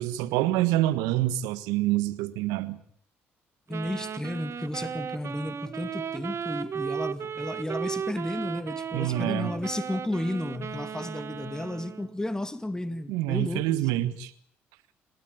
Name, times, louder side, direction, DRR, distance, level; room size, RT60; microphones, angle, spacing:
voice 1, 0.0-2.8 8.9-9.5 13.1-14.3, right 15 dB, 75° right, 1.5 m, -26 dB
voice 2, 3.7-13.9, left 1 dB, 10° left, 2.2 m, -33 dB
Wind instrument woodwind instrument, 3.7-12.2, right 7 dB, 45° right, 1.8 m, -35 dB
28.5 x 13.0 x 9.5 m
hypercardioid pair, 55°, 6 cm